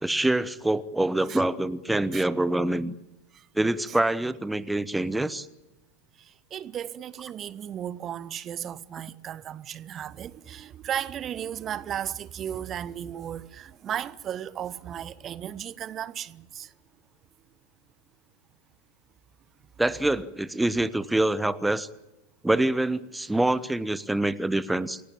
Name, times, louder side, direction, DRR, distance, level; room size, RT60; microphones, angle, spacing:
voice 1, 0.0-2.9 3.5-5.5 19.8-21.9 22.4-25.0, right 1 dB, 5° right, 1.1 m, -25 dB
voice 2, 6.2-16.7, right 10 dB, 30° right, 0.8 m, -35 dB
28.0 x 17.0 x 8.8 m
figure-of-eight pair, 90°, 0 cm